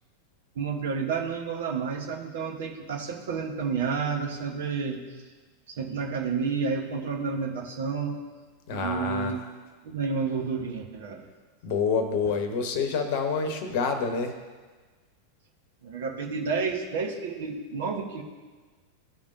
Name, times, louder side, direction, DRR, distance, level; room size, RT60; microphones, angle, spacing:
voice 1, 0.5-5.0 5.7-8.2 8.7-9.4 9.8-11.2 15.8-18.2, right 5 dB, 60° right, 2 dB, 1.1 m, -30 dB
voice 2, 8.7-9.3 11.6-14.4, left 5 dB, 50° left, 7 dB, 1.0 m, -27 dB
14.5 x 5.3 x 2.7 m, 1.4 s
figure-of-eight pair, 90°, 0 cm